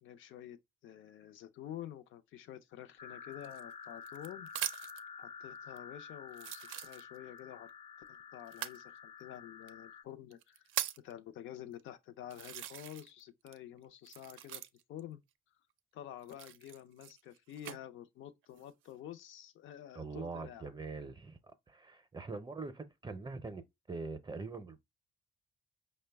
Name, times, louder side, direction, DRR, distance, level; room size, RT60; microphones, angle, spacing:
voice 1, 0.0-4.5 5.2-7.7 8.1-10.7 11.0-14.6 14.9-15.2 15.9-20.7, left 11 dB, 80° left, 0.5 m, -49 dB
sound 1, 3.0-10.0, left 6 dB, 30° left, 0.4 m, -50 dB
sound 2, 3.4-5.1 5.8-5.9 6.3-7.4 8.5-8.8 9.7-9.8 10.3-11.1 11.8-11.9 12.3-13.2 13.5-15.0 16.2-17.8 18.4-18.9, right 11 dB, 85° right, 0.4 m, -41 dB
voice 2, 20.0-21.4 21.7-24.8, right 4 dB, 20° right, 0.5 m, -43 dB
5.1 x 2.1 x 3.3 m
cardioid pair, 90°, 20 cm